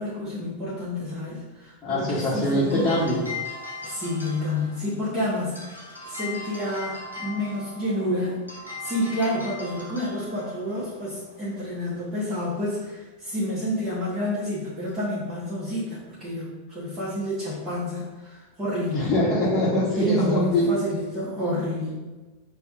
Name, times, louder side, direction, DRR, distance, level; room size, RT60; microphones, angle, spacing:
voice 1, 0.0-2.9 3.8-5.7 6.0-8.4 8.8-19.1 20.0-21.9, left 1 dB, 15° right, -10 dB, 1.1 m, -29 dB
voice 2, 1.8-3.2 18.9-20.7, left 1 dB, 25° left, -10 dB, 1.1 m, -23 dB
sound 1, 2.4-12.8, left 3 dB, 85° left, 0.8 m, -40 dB
6.5 x 2.3 x 2.5 m, 1.2 s
figure-of-eight pair, 90°, 0 cm